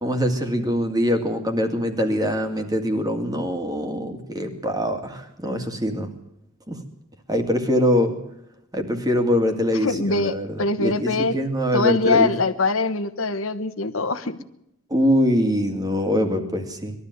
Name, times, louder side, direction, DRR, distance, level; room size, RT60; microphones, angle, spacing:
voice 1, 0.0-6.1 6.7-6.8 7.3-8.2 8.7-12.3 14.9-16.9, equal, 20° right, 6 dB, 2.3 m, -23 dB
voice 2, 9.8-11.3 11.7-14.4, left 3 dB, 80° left, 11 dB, 1.3 m, -23 dB
21.0 x 13.0 x 9.7 m, 0.81 s
head